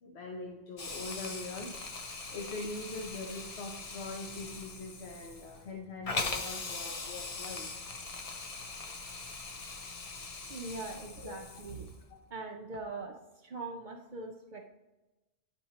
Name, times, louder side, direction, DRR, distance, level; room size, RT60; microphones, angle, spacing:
voice 1, 0.0-7.7 11.2-11.3 12.1-12.2, left 2 dB, 80° left, 0 dB, 1.1 m, -42 dB
Hiss, 0.8-12.0, left 3 dB, 45° left, 0.6 m, -41 dB
voice 2, 10.5-11.9 12.3-13.2 13.4-14.7, right 3 dB, 55° right, 2 dB, 0.7 m, -41 dB
10.5 x 4.3 x 2.8 m, 1.1 s
omnidirectional pair, 1.1 m